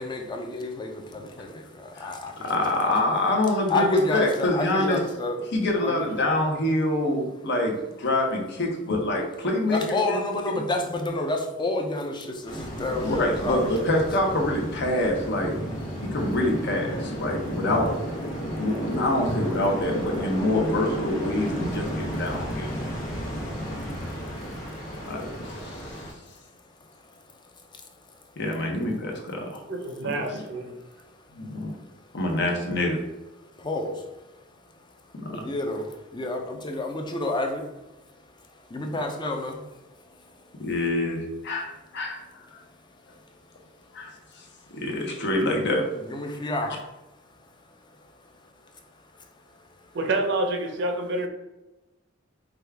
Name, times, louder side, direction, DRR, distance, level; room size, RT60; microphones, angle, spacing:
voice 1, 0.0-2.8 3.7-5.4 5.8-6.2 9.7-13.7 14.0-14.4 18.4-18.5 22.8-23.5 23.9-24.0 24.8-25.0 26.0-26.1 26.8-28.2 30.8-31.6 32.1-32.2 33.6-34.9 35.3-37.7 38.4-40.5 45.9-46.9 47.4-47.5 47.8-48.1 48.7-48.8 49.2-49.3, left 2 dB, 25° left, 3 dB, 0.5 m, -31 dB
voice 2, 2.4-5.0 5.5-10.2 10.5-10.6 13.0-15.6 16.1-17.9 18.6-22.7 25.1-26.1 28.4-29.6 30.0-30.1 31.3-31.7 32.1-33.0 40.6-42.2 43.9-44.1 44.7-45.9, left 1 dB, 60° left, 1 dB, 0.9 m, -26 dB
sound 1, 12.5-26.1, equal, 80° left, 1.2 m, -33 dB
voice 3, 29.7-30.7 49.9-51.3, right 2 dB, 60° right, 4 dB, 0.7 m, -27 dB
5.0 x 2.4 x 3.4 m, 1.0 s
head